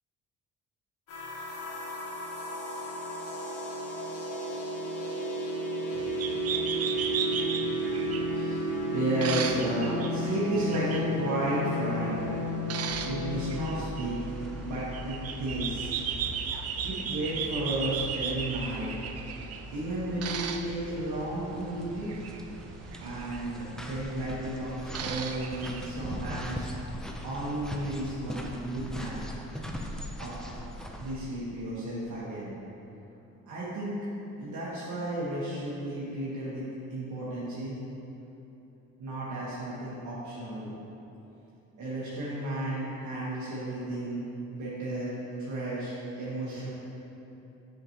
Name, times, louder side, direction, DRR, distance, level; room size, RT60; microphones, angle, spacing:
sound 1, 1.1-13.9, equal, 85° left, 1.3 m, -33 dB
sound 2, 5.9-25.9, right 7 dB, 55° right, 0.5 m, -37 dB
voice 1, 8.1-8.7 8.9-12.4 12.9-14.2 14.6-15.9 16.3-18.9 19.7-22.1 23.0-26.9 27.2-29.2 30.2-30.4 31.0-32.5 33.5-34.0 34.4-37.8 39.0-40.7 41.8-44.2 44.5-45.1 45.4-46.7, right 1 dB, 75° right, -8 dB, 1.4 m, -33 dB
sound 3, 12.9-31.2, left 1 dB, ahead, 0.5 m, -41 dB
6.6 x 5.9 x 2.9 m, 2.9 s
cardioid pair, 90°, 30 cm